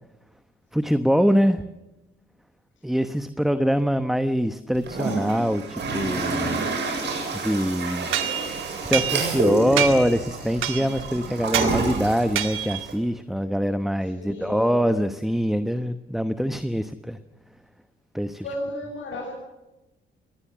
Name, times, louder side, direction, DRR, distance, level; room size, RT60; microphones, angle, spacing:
voice 1, 0.7-1.6 2.8-6.7 7.3-8.1 8.9-17.2 18.1-18.4, equal, ahead, 11 dB, 1.0 m, -24 dB
Toilet flush, 4.7-12.9, right 3 dB, 60° right, 7.9 m, -29 dB
sound 1, 8.1-9.5 9.8-10.2 10.6-11.1 11.5-11.8 12.4-12.9, right 10 dB, 85° right, 2.0 m, -27 dB
voice 2, 14.0-14.9 18.4-19.3, left 1 dB, 70° left, -1 dB, 7.1 m, -34 dB
21.5 x 18.0 x 7.4 m, 0.99 s
cardioid pair, 90°, 20 cm